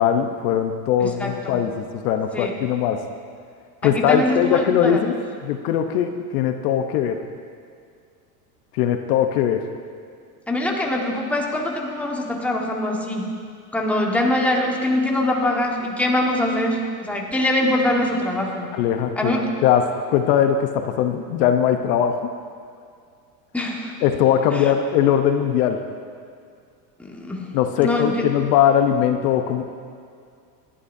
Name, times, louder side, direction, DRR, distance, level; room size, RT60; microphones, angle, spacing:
voice 1, 0.0-3.0 3.8-5.2 5.4-7.2 8.7-9.6 18.7-19.3 19.6-19.8 20.1-22.2 24.0-25.8 27.5-29.6, left 9 dB, 65° left, 6 dB, 1.0 m, -20 dB
voice 2, 1.0-1.6 2.3-2.5 3.8-5.0 10.5-13.3 13.7-18.7 19.2-19.4 23.5-23.9 24.5-24.7 27.0-27.5 27.8-28.2, left 1 dB, 5° left, -1 dB, 1.5 m, -23 dB
18.5 x 11.5 x 2.7 m, 2.2 s
supercardioid pair, 120°, 49 cm